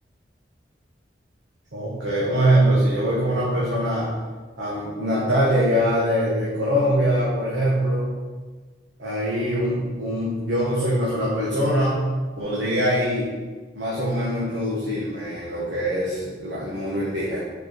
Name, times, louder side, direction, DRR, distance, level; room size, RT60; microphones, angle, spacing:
voice 1, 1.7-4.1 4.6-8.1 9.0-12.0 12.4-13.3 13.7-17.4, equal, 85° right, -7 dB, 1.4 m, -23 dB
5.3 x 4.7 x 4.6 m, 1.4 s
head